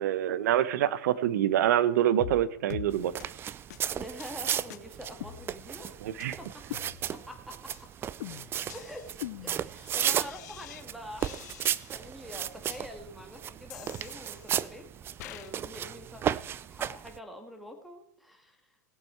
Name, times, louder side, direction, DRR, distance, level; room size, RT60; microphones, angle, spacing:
voice 1, 0.0-3.1 6.0-6.4, right 11 dB, 70° right, 16 dB, 0.8 m, -26 dB
sound 1, 2.2-2.4 2.7-2.9 3.2-3.3 3.7-3.8 4.2-4.4 4.7-4.8 5.2-5.8 6.2-6.3 6.7-7.3 7.7-7.9 8.2-10.8 11.2-12.1 12.7-12.8 13.7-14.7 15.2-15.5, left 14 dB, 65° left, 0.8 m, -43 dB
sound 2, 2.9-17.2, right 9 dB, 25° right, 0.4 m, -35 dB
voice 2, 3.9-6.0 6.4-6.8 7.1-7.6 8.7-9.0 9.4-14.8 15.1-18.6, equal, ahead, 5 dB, 2.0 m, -46 dB
18.0 x 7.3 x 4.6 m, 0.71 s
hypercardioid pair, 120°, 10 cm